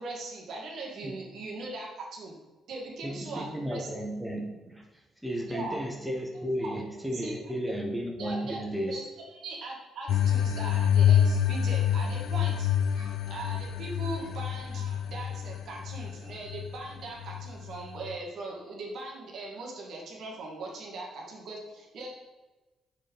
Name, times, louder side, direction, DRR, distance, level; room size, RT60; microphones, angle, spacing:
voice 1, 0.0-2.3 2.7-3.9 5.5-5.8 6.6-6.7 7.1-7.4 8.2-8.6 8.9-9.0 9.3-22.1, right 2 dB, 65° right, -2 dB, 1.8 m, -40 dB
voice 2, 3.0-9.0, equal, ahead, 0 dB, 1.1 m, -34 dB
sound 1, 10.1-18.2, left 9 dB, 75° left, 0.4 m, -27 dB
6.7 x 3.6 x 5.3 m, 1.1 s
cardioid pair, 90°, 0 cm